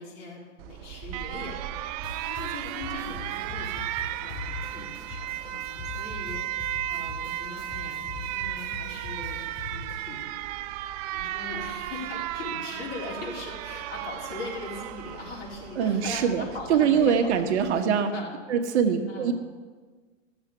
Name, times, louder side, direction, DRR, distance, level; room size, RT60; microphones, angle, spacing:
voice 1, 0.0-1.7 2.2-9.4 9.7-10.3 11.1-18.4 18.9-19.3, left 3 dB, 50° left, -3 dB, 4.1 m, -40 dB
Alarm, 0.6-17.8, right 13 dB, 35° right, 0.4 m, -35 dB
sound 1, 2.0-10.2, left 4 dB, 30° left, 3.0 m, -42 dB
voice 2, 15.8-18.1 18.5-19.3, right 7 dB, 60° right, 6 dB, 1.3 m, -23 dB
14.0 x 7.3 x 6.7 m, 1.4 s
hypercardioid pair, 115°, 38 cm